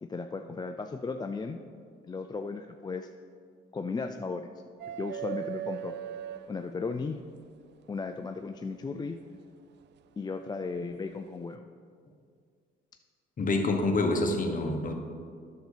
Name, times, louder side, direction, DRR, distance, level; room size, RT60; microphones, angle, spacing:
voice 1, 0.0-1.6 2.1-3.1 3.7-4.5 5.0-6.0 6.5-7.2 7.9-9.2 10.2-11.6, left 4 dB, 20° left, 6 dB, 0.4 m, -35 dB
sound 1, 4.8-7.2 8.9-9.0 10.8-10.9, right 11 dB, 60° right, 0.4 m, -38 dB
voice 2, 13.4-14.9, left 2 dB, 45° left, 3 dB, 1.3 m, -27 dB
9.3 x 6.6 x 5.0 m, 2.1 s
cardioid pair, 90°, 20 cm